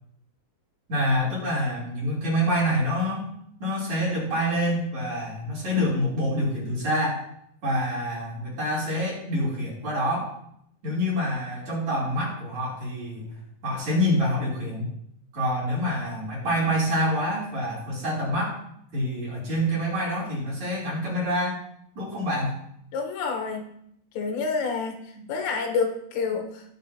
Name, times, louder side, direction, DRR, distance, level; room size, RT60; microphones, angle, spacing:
voice 1, 0.9-3.3 3.6-7.2 7.6-10.4 10.8-13.3 13.6-14.9 15.3-18.6 18.9-21.6 22.0-22.6 25.2-25.3, equal, 40° right, -6 dB, 3.8 m, -26 dB
voice 2, 22.9-23.8 24.2-26.6, left 4 dB, 75° left, 3 dB, 3.6 m, -28 dB
19.0 x 7.1 x 2.8 m, 0.71 s
omnidirectional pair, 6.0 m